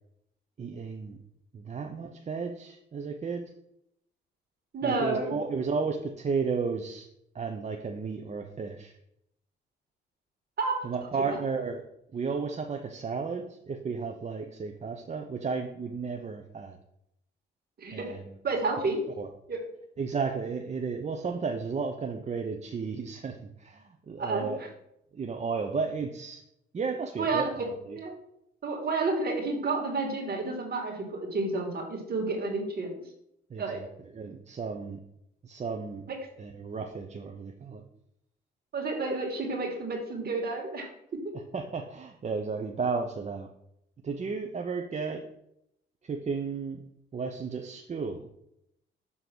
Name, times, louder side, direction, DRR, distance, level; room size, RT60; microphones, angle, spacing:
voice 1, 0.6-1.2 1.5-3.4 4.8-7.1 7.3-9.0 10.8-11.8 12.1-16.8 17.9-18.3 19.2-19.3 20.0-24.6 25.1-26.4 26.7-27.5 27.8-28.0 33.5-33.9 34.1-35.0 35.4-36.0 36.4-37.8 41.5-43.5 44.0-45.2 46.0-46.8 47.1-48.3, right 5 dB, 35° right, 4 dB, 0.8 m, -33 dB
voice 2, 4.7-5.4 10.6-10.9 11.3-11.4 17.8-18.1 18.4-19.0 19.5-19.6 24.2-24.7 27.2-27.7 27.9-28.1 28.6-32.9 33.6-33.8 36.1-36.2 38.7-40.9, right 3 dB, 50° right, 0 dB, 2.4 m, -30 dB
6.9 x 3.7 x 6.2 m, 0.77 s
cardioid pair, 90°, 20 cm